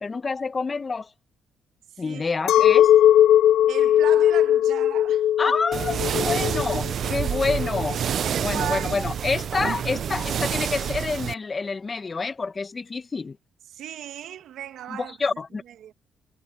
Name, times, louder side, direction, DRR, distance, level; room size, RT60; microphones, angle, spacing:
voice 1, 0.0-1.1 2.0-2.9 5.4-8.0 8.4-13.4 14.9-15.6, left 4 dB, 30° left, 1.0 m, -28 dB
voice 2, 1.9-2.3 3.7-5.6 8.2-9.0 13.7-15.2 15.7-15.9, right 11 dB, 75° right, 1.8 m, -36 dB
Chink clink, 2.5-7.9, left 11 dB, 80° left, 0.4 m, -19 dB
sound 1, 5.7-11.3, right 8 dB, 60° right, 0.5 m, -28 dB
cardioid pair, 90°, 0 cm